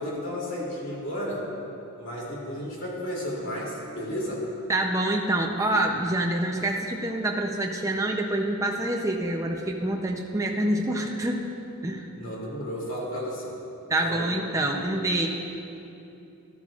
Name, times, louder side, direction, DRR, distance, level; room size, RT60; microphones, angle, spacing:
voice 1, 0.0-1.4 2.0-4.4 12.2-13.5 14.0-14.3, equal, 60° left, -5 dB, 2.7 m, -33 dB
voice 2, 4.7-11.4 11.8-12.1 13.9-15.3, right 1 dB, 15° right, 1 dB, 0.5 m, -26 dB
13.5 x 12.5 x 2.4 m, 2.8 s
head